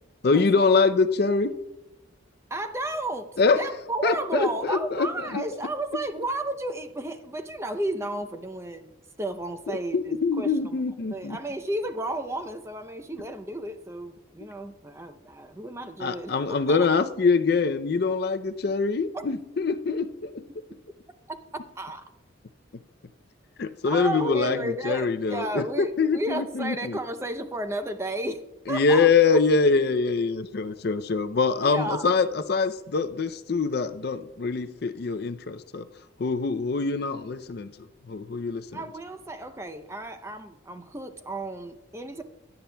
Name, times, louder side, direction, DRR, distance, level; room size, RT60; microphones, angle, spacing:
voice 1, 0.2-1.5 3.4-3.6 4.0-5.4 9.9-11.4 16.0-20.4 23.6-27.0 28.7-35.9 36.2-37.7 38.1-38.8, left 4 dB, 50° left, 11 dB, 0.4 m, -24 dB
voice 2, 2.5-8.9 9.2-10.8 11.1-16.9 19.1-19.2 21.3-21.4 21.8-22.0 23.9-28.4 28.7-29.1 31.6-32.1 38.7-42.2, right 1 dB, 15° right, 9 dB, 0.5 m, -33 dB
17.0 x 10.5 x 2.2 m, 0.95 s
head